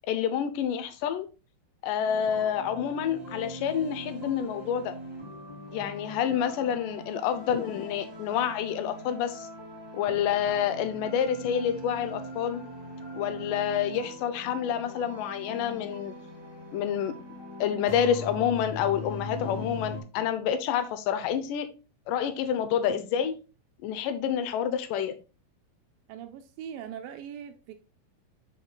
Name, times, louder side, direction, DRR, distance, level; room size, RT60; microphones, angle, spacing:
voice 1, 0.1-1.3 1.8-5.0 5.7-9.5 9.9-12.6 13.1-16.1 16.7-17.1 17.6-21.7 22.1-23.3 23.8-25.2, left 8 dB, 85° left, 1.9 m, -28 dB
sound 1, 2.0-20.0, left 1 dB, 20° right, 0.6 m, -41 dB
voice 2, 26.1-27.7, right 9 dB, 80° right, 2.2 m, -41 dB
6.8 x 6.5 x 2.2 m
omnidirectional pair, 4.5 m